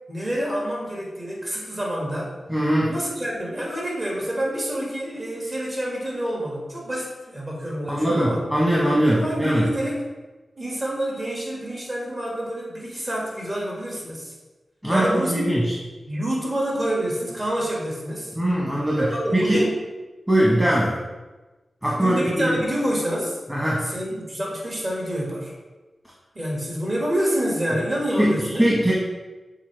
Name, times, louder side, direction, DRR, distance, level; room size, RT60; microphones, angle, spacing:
voice 1, 0.1-2.4 2.9-8.4 9.1-10.1 10.6-14.3 14.9-15.5 16.1-18.3 18.9-19.8 21.8-23.4 23.8-25.5 26.3-28.7, right 1 dB, 40° right, -3 dB, 2.1 m, -27 dB
voice 2, 2.5-2.9 7.9-9.6 14.8-15.7 18.3-19.7 20.3-21.0 21.8-22.6 23.5-23.8 28.2-28.9, right 1 dB, 15° right, -5 dB, 1.4 m, -21 dB
7.1 x 4.1 x 3.4 m, 1.2 s
cardioid pair, 55°, 0 cm